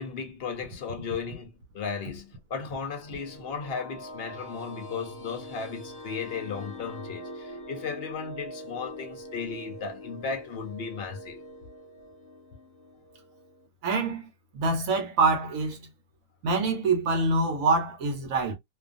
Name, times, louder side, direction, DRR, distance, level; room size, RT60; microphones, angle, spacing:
voice 1, 0.0-11.4, left 5 dB, 60° left, 0.6 m, -35 dB
sound 1, 2.9-13.7, left 1 dB, 35° left, 1.0 m, -44 dB
voice 2, 13.8-14.3 14.5-15.9 16.4-18.5, right 3 dB, 70° right, 1.1 m, -25 dB
2.4 x 2.4 x 2.4 m
omnidirectional pair, 1.6 m